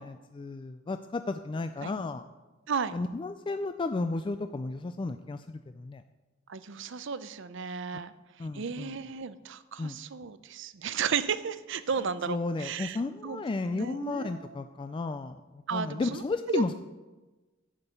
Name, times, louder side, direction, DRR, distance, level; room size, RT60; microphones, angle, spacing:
voice 1, 0.3-2.2 2.9-6.0 8.4-8.9 9.8-10.0 12.3-16.7, left 3 dB, 25° left, 9 dB, 0.3 m, -33 dB
voice 2, 6.5-8.1 8.5-13.0 13.2-14.5 15.7-16.2 16.5-16.6, right 6 dB, 65° right, 14 dB, 0.6 m, -34 dB
11.0 x 5.5 x 8.0 m, 1.2 s
head